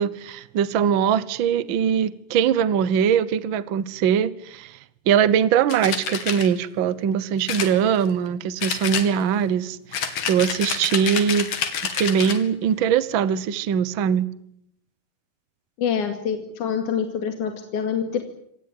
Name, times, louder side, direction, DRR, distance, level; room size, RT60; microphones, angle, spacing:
voice 1, 0.0-4.8 5.1-11.5 12.0-14.3, right 8 dB, 85° right, 15 dB, 1.0 m, -22 dB
sound 1, 5.7-6.5 7.5-8.3 8.6-9.5 9.9-12.5, left 7 dB, 85° left, 4.1 m, -28 dB
voice 2, 15.8-18.2, left 7 dB, 65° left, 5 dB, 3.6 m, -26 dB
26.0 x 19.0 x 9.7 m, 0.75 s
omnidirectional pair, 3.9 m